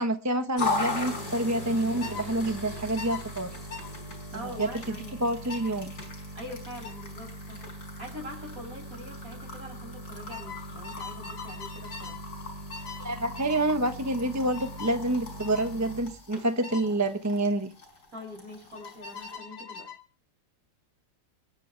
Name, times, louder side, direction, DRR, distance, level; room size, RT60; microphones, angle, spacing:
voice 1, 0.0-3.5 4.6-5.9 13.0-17.7, right 1 dB, 15° right, 7 dB, 0.9 m, -28 dB
sound 1, 0.6-19.4, left 2 dB, 65° left, 5.7 m, -38 dB
sound 2, 2.0-2.3 3.0-3.2 3.7-3.9 4.6-4.8 5.5-5.7 6.8-7.0 8.5-8.7 9.0-9.4 10.3-12.2 12.7-13.1 13.4-13.7 14.5-15.0 15.4-15.7 16.6-16.9 18.8-20.0, left 6 dB, 90° left, 2.4 m, -42 dB
voice 2, 4.3-5.2 6.4-7.6 8.0-12.2 18.1-19.9, left 1 dB, 55° right, 2 dB, 7.1 m, -43 dB
27.0 x 12.0 x 3.3 m, 0.35 s
omnidirectional pair, 1.8 m